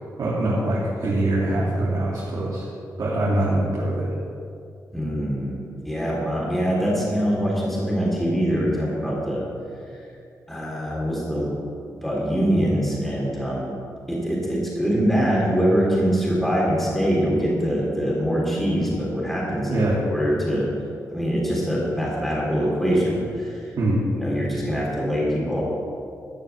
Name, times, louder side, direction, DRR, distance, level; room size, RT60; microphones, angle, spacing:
voice 1, 0.2-2.6 3.0-4.1 19.7-20.0 23.8-24.0, right 1 dB, 65° right, -8 dB, 2.8 m, -23 dB
voice 2, 4.9-5.6 5.8-9.4 10.5-11.5 11.9-13.7 14.1-19.8 20.1-20.7 21.1-23.7 24.2-25.6, equal, 5° left, -5 dB, 3.3 m, -23 dB
13.5 x 6.6 x 7.1 m, 2.4 s
cardioid pair, 90°, 7 cm